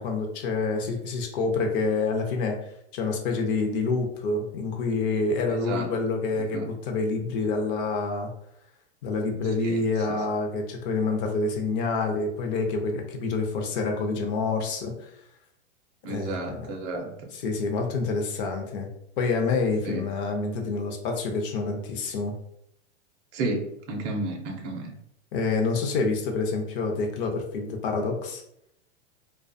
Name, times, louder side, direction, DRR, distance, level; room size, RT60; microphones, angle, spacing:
voice 1, 0.0-2.6 2.9-8.3 9.0-14.9 16.1-16.7 17.3-18.9 19.2-22.3 25.3-28.4, left 3 dB, 50° left, 2 dB, 0.6 m, -27 dB
voice 2, 5.5-5.9 6.5-6.7 9.6-9.8 10.1-10.2 16.0-17.1 19.8-20.1 23.3-24.9, right 2 dB, 30° right, 1 dB, 0.5 m, -32 dB
2.4 x 2.3 x 2.5 m, 0.75 s
hypercardioid pair, 125°, 35 cm